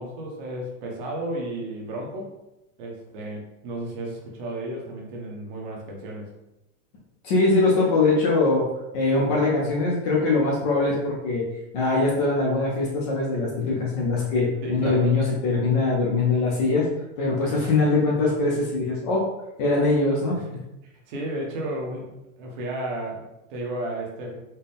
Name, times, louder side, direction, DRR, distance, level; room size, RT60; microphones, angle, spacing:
voice 1, 0.0-2.3 2.8-6.3 13.7-13.8 14.6-15.1 20.3-24.4, right 1 dB, 35° right, -1 dB, 0.8 m, -33 dB
voice 2, 7.2-8.7 8.9-11.4 11.7-16.9 17.2-19.3 19.6-20.4, left 3 dB, 30° left, -3 dB, 0.5 m, -22 dB
4.3 x 2.1 x 3.4 m, 0.92 s
supercardioid pair, 160°, 43 cm